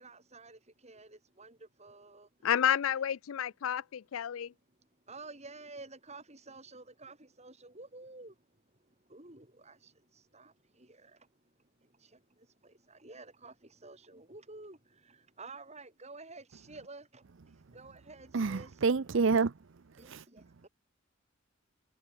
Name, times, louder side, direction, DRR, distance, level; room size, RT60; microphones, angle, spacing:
voice 1, 0.0-2.5 5.1-11.4 11.8-17.2 17.7-18.8 20.0-20.7, right 3 dB, 35° right, 7.4 m, -51 dB
voice 2, 2.4-4.5, left 9 dB, 80° left, 0.4 m, -30 dB
voice 3, 18.3-19.5 20.0-20.2, right 4 dB, 65° right, 0.6 m, -28 dB
head